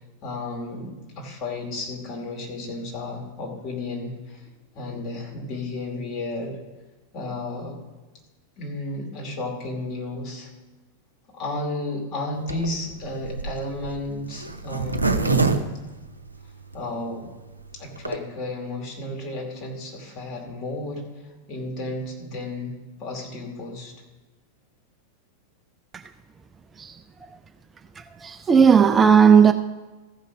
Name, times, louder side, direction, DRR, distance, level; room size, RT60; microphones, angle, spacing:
voice 1, 0.2-4.5 4.7-6.6 7.1-7.8 8.6-10.5 11.3-15.5 16.7-17.3 17.7-21.0 21.5-23.9, left 2 dB, 40° left, 2.4 m, -33 dB
Zipper (clothing), 12.4-16.7 17.2-17.3 17.5-17.6 17.8-18.2, right 3 dB, 80° right, 0.6 m, -25 dB
voice 2, 28.0-29.5, right 6 dB, 20° right, 0.4 m, -15 dB
14.5 x 5.3 x 6.1 m
figure-of-eight pair, 90°, 0 cm